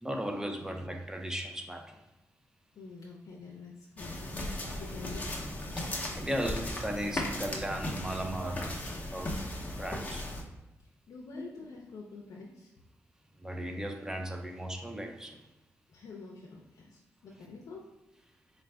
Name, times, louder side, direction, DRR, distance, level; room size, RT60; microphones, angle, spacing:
voice 1, 0.0-2.0 5.8-5.9 6.2-9.4 9.8-10.3 11.3-11.4 13.4-15.4, right 1 dB, 10° right, 4 dB, 0.5 m, -36 dB
voice 2, 2.7-5.3 11.1-12.7 15.9-17.8, left 4 dB, 75° left, -2 dB, 0.5 m, -47 dB
sound 1, 4.0-10.4, left 1 dB, 25° left, 0.7 m, -37 dB
4.3 x 2.5 x 3.3 m, 1.0 s
wide cardioid pair, 120°, 6 cm